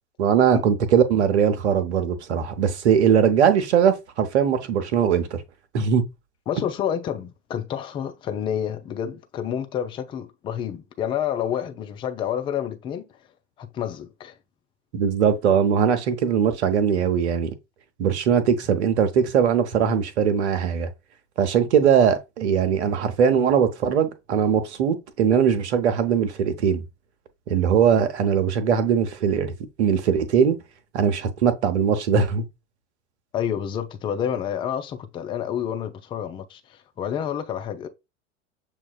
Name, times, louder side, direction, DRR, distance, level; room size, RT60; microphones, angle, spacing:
voice 1, 0.2-5.4 5.7-6.0 14.9-17.5 18.0-20.9 21.4-26.8 27.5-30.6 30.9-32.4, right 7 dB, 65° right, 0.8 m, -20 dB
voice 2, 6.5-13.1 13.6-14.3 33.3-37.9, left 9 dB, 15° left, 0.3 m, -29 dB
7.1 x 2.4 x 2.2 m
figure-of-eight pair, 80°, 37 cm